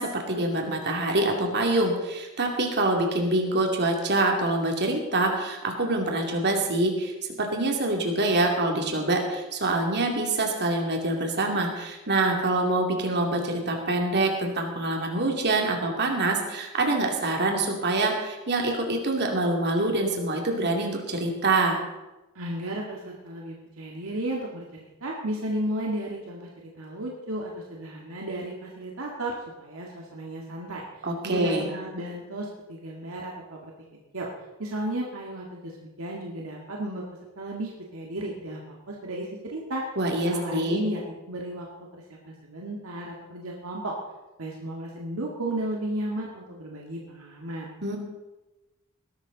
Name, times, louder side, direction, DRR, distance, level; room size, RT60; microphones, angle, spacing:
voice 1, 0.0-21.8 31.0-31.7 40.0-40.8 47.8-48.0, right 2 dB, 55° right, 1 dB, 2.7 m, -25 dB
voice 2, 22.4-26.5 26.8-33.7 34.1-34.3 34.6-37.0 37.4-39.8 40.2-41.7 41.9-44.0 44.4-47.7, right 1 dB, 70° right, -2 dB, 2.0 m, -34 dB
20.0 x 12.0 x 4.0 m, 1.1 s
head